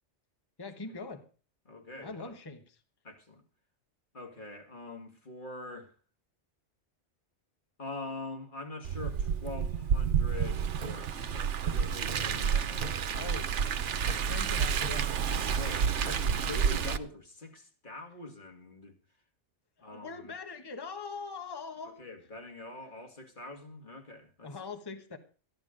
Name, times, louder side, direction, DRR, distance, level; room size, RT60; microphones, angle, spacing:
voice 1, 0.6-1.3 2.0-2.8 13.1-13.8 14.2-15.1 19.8-22.0 24.4-25.2, left 4 dB, 20° left, 1.2 m, -42 dB
voice 2, 1.7-2.3 3.0-3.4 4.1-6.0 7.8-13.1 15.4-19.0 19.8-20.3 21.8-24.5, left 2 dB, 45° left, 2.4 m, -44 dB
Car, 8.8-17.0, right 7 dB, 80° right, 1.2 m, -30 dB
sound 1, 10.8-11.6 11.9-12.5 12.8-13.5 14.0-14.5 14.8-15.3 15.9-16.5, right 6 dB, 45° right, 0.8 m, -45 dB
14.0 x 11.0 x 5.1 m
omnidirectional pair, 1.2 m